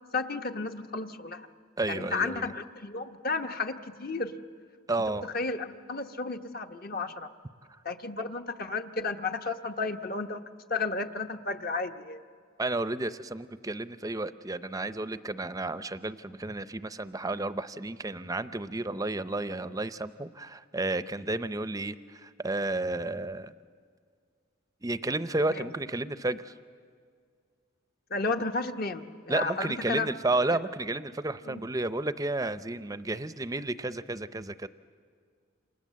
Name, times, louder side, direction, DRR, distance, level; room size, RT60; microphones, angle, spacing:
voice 1, 0.1-1.5 1.9-4.3 5.1-7.3 7.8-10.4 10.7-12.2 28.1-30.1 31.4-31.6, left 3 dB, 45° left, 6 dB, 1.0 m, -33 dB
voice 2, 1.8-2.5 4.9-5.3 7.7-7.8 12.6-23.5 24.8-26.5 29.3-34.7, right 2 dB, 15° right, 13 dB, 0.6 m, -32 dB
29.0 x 27.0 x 7.5 m, 2.1 s
head